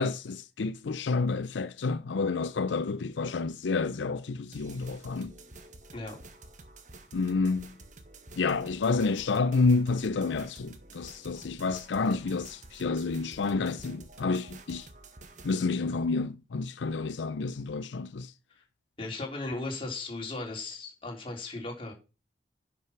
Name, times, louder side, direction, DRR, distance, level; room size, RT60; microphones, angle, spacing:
voice 1, 0.0-5.3 7.1-7.7 8.4-14.9 15.4-18.3, left 4 dB, 85° left, 0.5 m, -29 dB
sound 1, 4.5-15.5, right 2 dB, 45° right, 1.4 m, -50 dB
voice 2, 19.0-21.9, left 2 dB, 30° left, 3.8 m, -37 dB
10.5 x 6.1 x 5.9 m
head